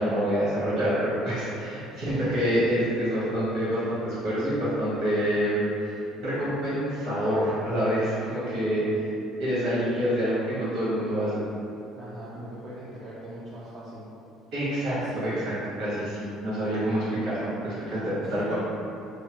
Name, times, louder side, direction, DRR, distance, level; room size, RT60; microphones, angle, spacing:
voice 1, 0.0-5.7 6.2-9.1 9.4-11.4 14.5-18.5, equal, 65° right, -10 dB, 1.4 m, -27 dB
voice 2, 12.0-14.0 15.0-15.3 18.2-18.5, right 1 dB, 40° right, -7 dB, 0.3 m, -41 dB
2.9 x 2.1 x 2.9 m, 2.7 s
cardioid pair, 150°, 0 cm